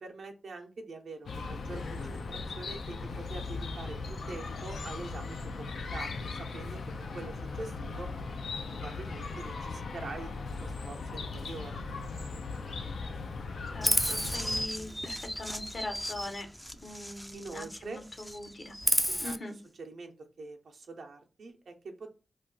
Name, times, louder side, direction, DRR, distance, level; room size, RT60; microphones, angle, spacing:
voice 1, 0.0-8.1 8.7-11.8 17.3-18.0 19.1-22.1, right 3 dB, 85° right, 3 dB, 0.6 m, -45 dB
Chirp tweet, 1.3-14.7, left 4 dB, 90° left, 0.4 m, -38 dB
voice 2, 13.7-16.5 16.8-18.7 19.2-19.5, left 2 dB, 60° left, 4 dB, 0.9 m, -41 dB
Chirp tweet 2, 13.8-17.8 18.1-19.4, equal, 5° left, 0.3 m, -32 dB
2.4 x 2.2 x 3.8 m, 0.32 s
cardioid pair, 60°, 0 cm